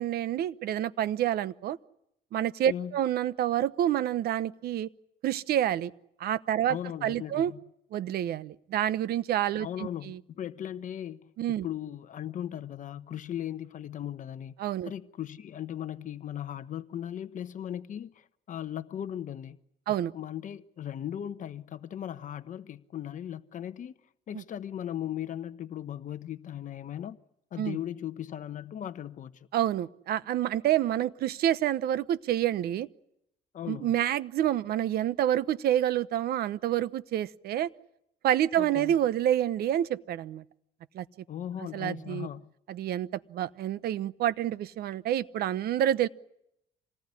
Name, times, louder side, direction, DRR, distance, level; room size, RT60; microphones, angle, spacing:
voice 1, 0.0-1.8 2.3-4.9 5.2-5.9 6.2-7.5 7.9-10.2 11.4-11.6 14.6-14.9 19.9-20.1 27.6-27.8 29.5-32.9 33.7-37.7 38.2-40.4 40.9-41.0 41.7-42.3 42.7-46.1, right 11 dB, 65° right, 0.9 m, -28 dB
voice 2, 6.7-7.6 9.6-14.5 14.8-19.6 19.9-24.0 24.3-27.2 27.5-29.5 33.5-33.9 38.6-39.0 41.3-42.5, left 10 dB, 50° left, 1.0 m, -38 dB
27.0 x 19.0 x 9.8 m
cardioid pair, 110°, 17 cm